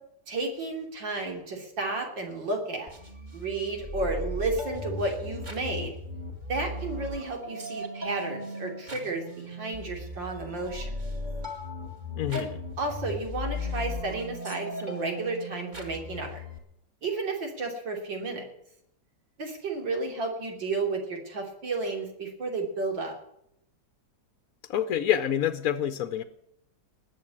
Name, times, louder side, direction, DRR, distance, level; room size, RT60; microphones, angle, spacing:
voice 1, 0.3-2.9 3.3-6.0 6.5-11.0 12.3-12.5 12.8-16.4 17.0-18.4 19.4-23.2, right 3 dB, 80° right, 2 dB, 3.8 m, -32 dB
sound 1, 2.9-16.6, left 1 dB, 25° right, 2.1 m, -37 dB
voice 2, 12.2-12.5 24.7-26.2, left 10 dB, 60° left, 8 dB, 1.1 m, -27 dB
20.0 x 7.3 x 8.7 m, 0.76 s
omnidirectional pair, 2.0 m